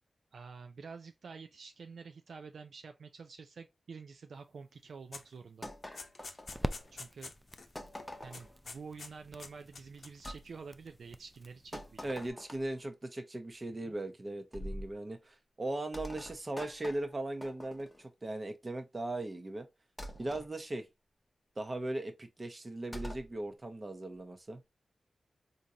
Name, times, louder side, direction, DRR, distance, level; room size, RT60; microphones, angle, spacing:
voice 1, 0.3-5.7 6.9-7.3 8.2-12.1 13.8-14.0, right 5 dB, 75° right, 0.3 m, -48 dB
sound 1, 4.4-12.3, equal, ahead, 0.4 m, -46 dB
sound 2, 5.1-5.3 5.6-7.7 7.9-8.1 8.3-9.1 9.4-10.5, left 3 dB, 65° left, 0.7 m, -48 dB
sound 3, 5.6-7.0 7.8-8.6 10.2-10.4 11.7-12.8 14.5-15.0 15.9-18.0 20.0-20.5 22.9-23.3, equal, 15° left, 0.8 m, -45 dB
voice 2, 12.0-19.7 20.2-20.9 21.6-24.6, right 1 dB, 35° right, 0.8 m, -38 dB
3.7 x 2.6 x 2.7 m
cardioid pair, 60°, 0 cm